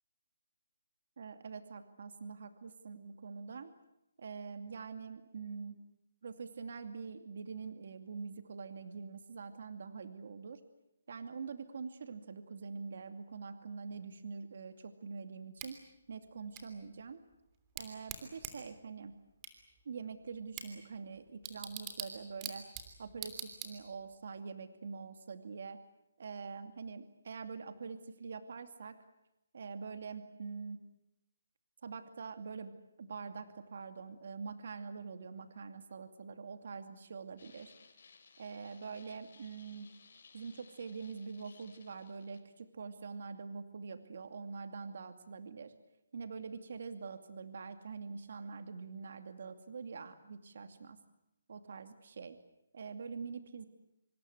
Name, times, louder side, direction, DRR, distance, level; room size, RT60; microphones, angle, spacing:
voice 1, 1.2-3.7 4.2-5.8 6.2-10.6 11.1-15.8 16.1-17.2 17.8-19.2 19.8-22.6 23.0-25.8 26.2-29.0 29.5-30.8 31.8-32.7 33.0-37.7 38.4-39.9 40.3-45.7 46.1-51.0 51.5-52.4 52.7-53.7, right 5 dB, 55° right, 8 dB, 2.5 m, -45 dB
Bicycle / Tick, 15.6-24.2, right 8 dB, 15° right, 3.0 m, -47 dB
sound 1, 37.4-42.4, left 5 dB, 60° left, 5.0 m, -61 dB
26.0 x 24.5 x 8.2 m, 0.85 s
hypercardioid pair, 165°, 0 cm